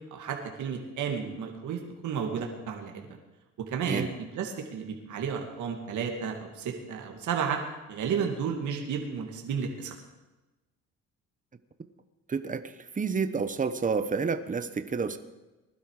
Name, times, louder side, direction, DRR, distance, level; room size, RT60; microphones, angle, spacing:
voice 1, 0.1-3.0 3.7-4.1 4.3-7.6 7.9-9.9, right 6 dB, 75° right, 2 dB, 2.4 m, -32 dB
voice 2, 12.3-15.2, right 5 dB, 25° right, 10 dB, 1.1 m, -29 dB
20.5 x 12.0 x 4.9 m, 1.1 s
cardioid pair, 90°, 30 cm